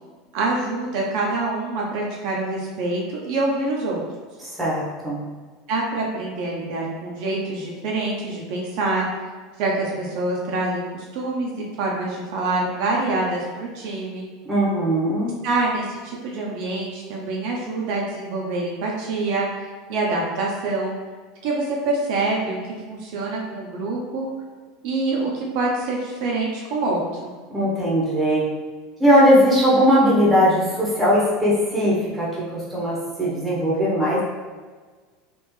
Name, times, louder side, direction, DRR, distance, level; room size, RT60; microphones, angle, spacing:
voice 1, 0.3-4.0 5.7-9.1 9.6-14.3 15.4-20.9 21.4-22.6 22.9-24.3 24.8-27.3, right 2 dB, 55° right, -2 dB, 0.6 m, -26 dB
voice 2, 4.4-5.2 14.5-15.3 27.5-28.4 29.0-34.2, equal, 10° right, -7 dB, 0.9 m, -19 dB
3.5 x 2.4 x 3.1 m, 1.4 s
supercardioid pair, 160°, 0 cm